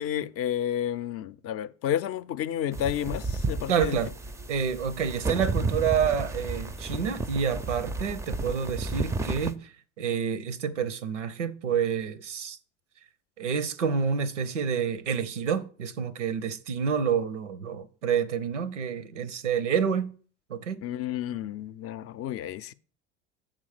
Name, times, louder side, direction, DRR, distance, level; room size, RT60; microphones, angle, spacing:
voice 1, 0.0-4.0 20.8-22.7, left 10 dB, 45° left, 0.5 m, -31 dB
sound 1, 2.7-9.5, right 3 dB, 10° right, 0.4 m, -32 dB
voice 2, 3.7-4.1 4.5-9.7 10.0-12.6 13.4-20.1 20.5-20.8, right 7 dB, 90° right, 0.7 m, -28 dB
7.2 x 3.7 x 6.5 m
hypercardioid pair, 75°, 35 cm